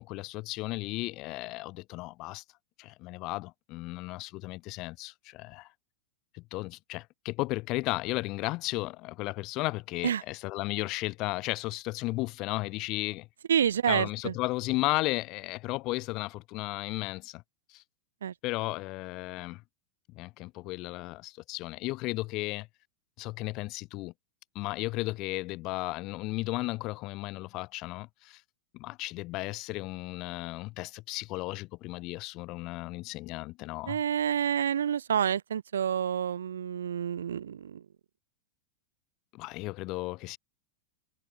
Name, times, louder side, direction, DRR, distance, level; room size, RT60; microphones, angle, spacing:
voice 1, 0.0-2.4 2.8-5.7 6.3-13.3 13.9-17.4 17.7-17.8 18.4-19.6 20.1-22.7 23.2-24.1 24.6-28.4 28.7-34.0 39.3-40.4, left 21 dB, 40° left, 3.7 m, -34 dB
voice 2, 13.5-14.3 18.2-18.3 33.9-37.8, right 8 dB, 65° right, 0.8 m, -28 dB
figure-of-eight pair, 90°, 0 cm